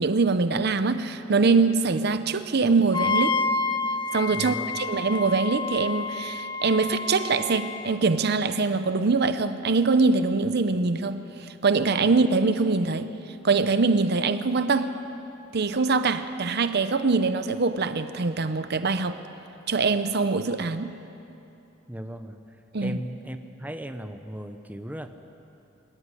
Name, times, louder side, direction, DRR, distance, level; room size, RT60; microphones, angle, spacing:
voice 1, 0.0-3.4 4.1-13.1 13.4-15.0 15.5-19.2 19.7-20.9 22.7-23.0, right 4 dB, 55° right, 11 dB, 0.7 m, -23 dB
Wind instrument woodwind instrument, 2.9-7.9, left 4 dB, 25° left, 0.8 m, -29 dB
voice 2, 4.3-4.8 12.0-12.1 21.9-22.4 22.8-25.1, right 1 dB, 10° right, 7 dB, 0.8 m, -37 dB
23.5 x 13.5 x 9.8 m, 2.8 s
head